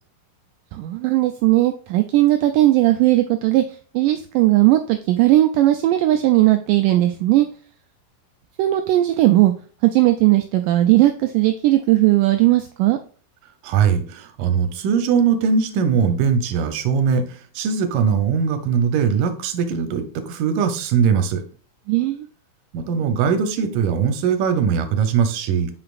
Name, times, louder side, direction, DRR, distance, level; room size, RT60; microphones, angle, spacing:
voice 1, 0.7-3.6 3.9-7.5 8.6-9.5 9.8-13.0 21.9-22.3, right 15 dB, 90° right, 7 dB, 1.8 m, -17 dB
voice 2, 13.6-21.4 22.7-25.7, right 6 dB, 70° right, 8 dB, 2.3 m, -20 dB
6.6 x 5.8 x 2.4 m, 0.42 s
omnidirectional pair, 4.4 m